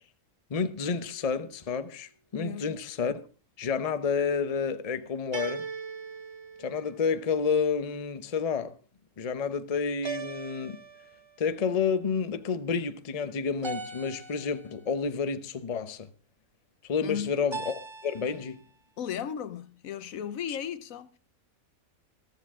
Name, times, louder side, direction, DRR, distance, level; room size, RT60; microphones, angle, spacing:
voice 1, 0.5-3.1 3.6-5.7 6.6-8.7 9.2-10.8 11.4-16.1 16.8-18.6 20.5-20.6, left 5 dB, 35° left, 0.7 m, -30 dB
sound 1, 0.9-1.6 5.3-7.3 10.0-11.4 13.6-14.8 17.5-18.5, right 4 dB, 25° right, 0.6 m, -40 dB
voice 2, 2.3-2.8 17.0-17.3 19.0-21.2, left 8 dB, 70° left, 1.2 m, -36 dB
14.0 x 13.5 x 3.6 m
omnidirectional pair, 1.5 m